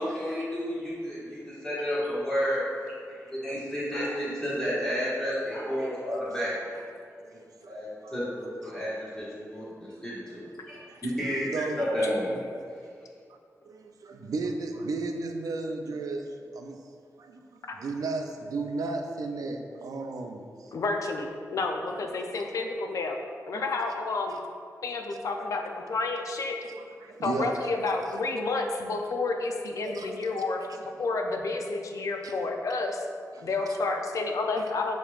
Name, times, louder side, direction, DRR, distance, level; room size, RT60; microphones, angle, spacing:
voice 1, 0.0-2.6 3.1-6.8 7.7-11.4 11.8-12.3, equal, 10° left, -10 dB, 1.4 m, -31 dB
voice 2, 11.3-11.8 12.3-12.4 13.7-16.2 16.5-16.8 17.2-17.4 17.8-20.7 22.0-22.1 22.3-22.5 23.5-23.7 26.7-27.6 29.8-30.1 32.2-32.3 33.4-33.8 34.6-34.7, right 3 dB, 80° right, 4 dB, 0.4 m, -34 dB
voice 3, 20.7-23.2 23.5-24.4 24.8-26.6 27.2-33.1 33.4-35.0, left 3 dB, 65° left, 3 dB, 0.4 m, -30 dB
6.8 x 2.9 x 2.4 m, 2.2 s
wide cardioid pair, 175°, 6 cm